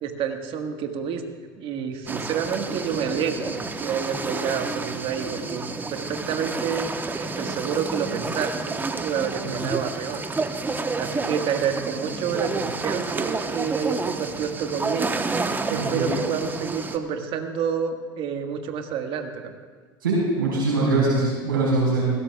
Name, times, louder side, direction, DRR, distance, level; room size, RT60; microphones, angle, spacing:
voice 1, 0.0-1.2 1.6-10.2 11.0-15.2 15.7-19.5, right 7 dB, 50° right, 4 dB, 1.6 m, -29 dB
sound 1, 2.1-17.0, right 3 dB, 15° right, 1.0 m, -30 dB
voice 2, 15.7-16.0 20.0-22.1, right 3 dB, 90° right, -6 dB, 4.7 m, -22 dB
20.5 x 17.0 x 2.3 m, 1.5 s
hypercardioid pair, 85°, 11 cm